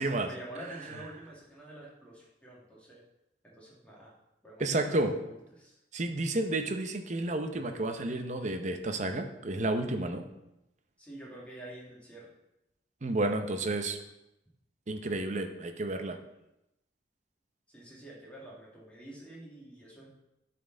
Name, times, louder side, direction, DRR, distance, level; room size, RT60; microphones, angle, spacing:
voice 1, 0.0-3.0 3.4-4.1 4.4-5.8 11.0-12.3 17.7-20.1, right 1 dB, 10° left, -5 dB, 2.0 m, -47 dB
voice 2, 4.6-5.1 5.9-10.2 13.0-14.0 14.9-16.2, right 2 dB, 45° right, 7 dB, 0.7 m, -31 dB
10.5 x 4.3 x 3.8 m, 0.88 s
head